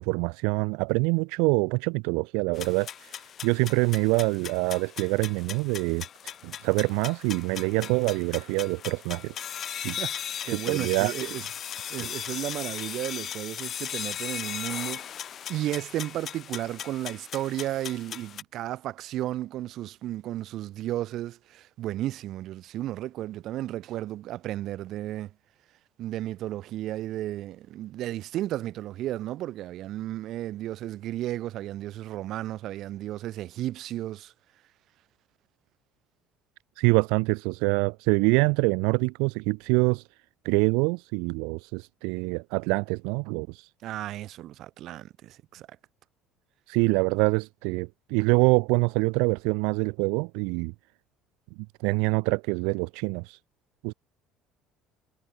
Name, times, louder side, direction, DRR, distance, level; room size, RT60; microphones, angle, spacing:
voice 1, 0.0-3.2 3.4-9.3 9.8-10.0 10.7-11.1 36.8-40.0 40.4-43.7 46.7-50.7 51.8-53.4 53.8-53.9, right 32 dB, 85° right, 0.6 m, -25 dB
sound 1, 2.6-18.4, left 9 dB, 35° left, 0.5 m, -38 dB
voice 2, 10.4-11.4 11.8-15.1 15.5-25.3 26.0-34.3 43.8-45.7, right 14 dB, 50° right, 1.8 m, -33 dB
cardioid pair, 155°, 0 cm